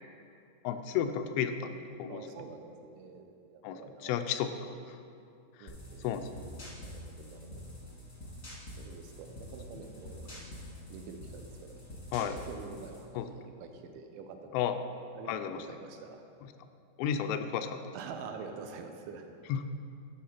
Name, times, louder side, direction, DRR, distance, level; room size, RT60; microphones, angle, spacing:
voice 1, 0.6-2.2 3.6-4.5 4.9-5.0 5.6-5.7 6.0-6.3 12.1-12.4 13.2-13.3 14.5-14.8 15.3-15.6 17.0-17.8 19.5-19.6, left 9 dB, 90° left, 8 dB, 3.0 m, -32 dB
voice 2, 2.1-4.4 5.6-6.1 6.8-7.7 8.8-10.6 10.9-14.6 15.1-16.2 17.9-19.3, right 5 dB, 85° right, 5 dB, 3.0 m, -47 dB
sound 1, 5.7-13.1, left 1 dB, 50° left, 0.9 m, -46 dB
11.5 x 6.2 x 4.3 m, 2.5 s
omnidirectional pair, 5.4 m